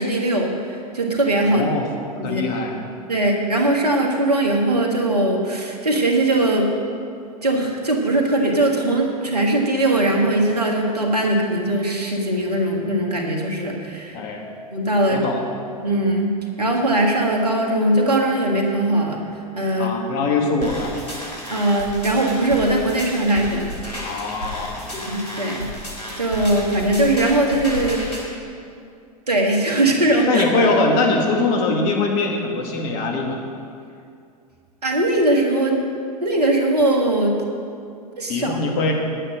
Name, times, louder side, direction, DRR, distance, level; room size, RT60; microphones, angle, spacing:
voice 1, 0.0-1.6 2.2-2.4 3.1-6.7 7.4-14.2 14.7-15.2 15.8-19.2 19.5-19.9 21.5-23.7 24.9-25.7 26.2-28.0 29.3-30.4 34.8-35.8 36.2-37.4 38.2-38.6, right 1 dB, 90° right, 1 dB, 1.8 m, -20 dB
voice 2, 1.4-1.9 2.2-2.8 14.1-14.4 15.1-15.4 19.8-21.0 24.0-24.9 30.3-33.4 38.3-38.9, left 3 dB, 50° left, 1 dB, 2.0 m, -22 dB
sound 1, 20.6-28.2, equal, 85° left, 3.0 m, -33 dB
10.0 x 8.8 x 6.4 m, 2.4 s
figure-of-eight pair, 95°, 20 cm